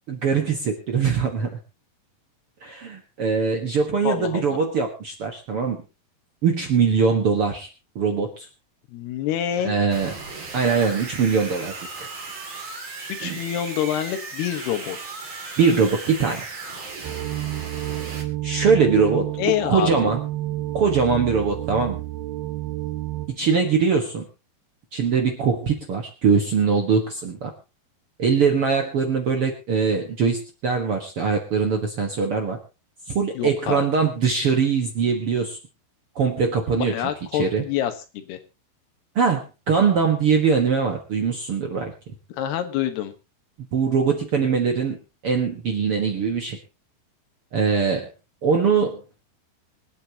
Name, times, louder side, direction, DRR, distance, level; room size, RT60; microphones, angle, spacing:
voice 1, 0.1-1.5 2.6-5.8 6.4-7.7 7.9-8.5 9.6-10.1 10.5-12.1 13.2-13.4 15.6-16.5 18.4-19.3 19.6-20.2 20.7-22.0 23.3-24.3 24.9-27.5 28.2-32.6 33.1-35.6 36.1-36.9 37.4-37.6 39.1-41.9 43.7-45.0 45.2-46.6 47.5-48.1 48.4-49.0, right 5 dB, 55° right, 3 dB, 1.6 m, -22 dB
voice 2, 4.0-4.5 8.9-9.8 13.1-15.0 19.4-20.1 33.4-33.9 36.7-38.4 42.3-43.1, left 10 dB, 85° left, 7 dB, 3.4 m, -26 dB
sound 1, 9.9-18.2, right 3 dB, 35° right, 2.8 m, -36 dB
sound 2, 17.0-23.3, right 16 dB, 75° right, 3.1 m, -30 dB
25.0 x 8.9 x 2.9 m, 0.29 s
omnidirectional pair, 4.5 m